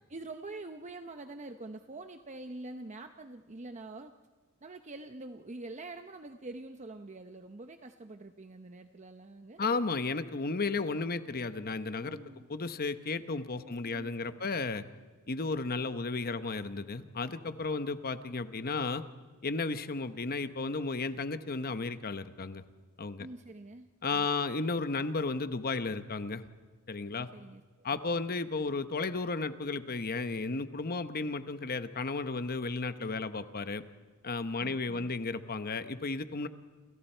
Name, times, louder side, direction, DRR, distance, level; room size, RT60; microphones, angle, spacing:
voice 1, 0.1-4.1 4.6-9.6 12.0-12.5 13.5-14.4 23.2-24.3 27.2-28.2 34.5-35.1, right 2 dB, 30° right, 7 dB, 0.8 m, -46 dB
voice 2, 9.6-12.2 12.5-14.8 15.3-19.0 19.4-22.6 23.0-23.3 24.0-26.4 26.9-27.3 27.8-33.8 34.2-36.5, left 3 dB, 45° left, 11 dB, 1.0 m, -33 dB
29.0 x 28.5 x 4.5 m, 1.5 s
head